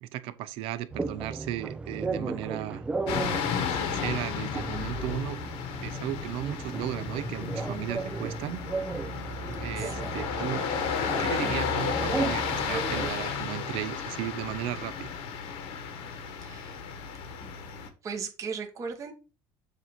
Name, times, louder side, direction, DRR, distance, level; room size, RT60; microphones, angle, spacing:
voice 1, 0.0-2.8 3.7-5.4 5.8-8.6 9.0-9.1 9.6-10.6 11.2-15.2, right 13 dB, 70° right, 0.6 m, -35 dB
sound 1, 0.9-13.1, right 3 dB, 10° right, 0.4 m, -35 dB
sound 2, 3.1-17.9, left 7 dB, 75° left, 1.3 m, -33 dB
voice 2, 9.8-10.4 16.4-16.9 17.4-17.5 18.0-19.1, right 5 dB, 35° right, 1.3 m, -38 dB
7.4 x 2.7 x 5.7 m
cardioid pair, 140°, 10 cm